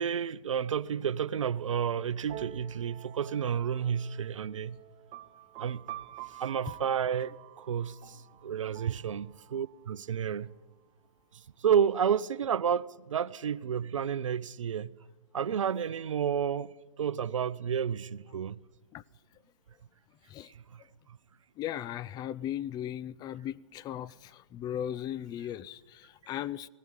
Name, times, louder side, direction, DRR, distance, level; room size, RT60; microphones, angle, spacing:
voice 1, 0.0-4.8 5.6-5.8 6.4-7.4 7.7-10.5 11.6-14.9 15.3-16.7 17.0-18.6 20.7-20.8, right 8 dB, 80° right, 0.6 m, -30 dB
sound 1, 2.3-9.8, right 13 dB, 30° right, 1.4 m, -48 dB
voice 2, 21.6-26.7, left 11 dB, 25° left, 0.5 m, -37 dB
18.5 x 16.0 x 8.9 m
hypercardioid pair, 120°, 16 cm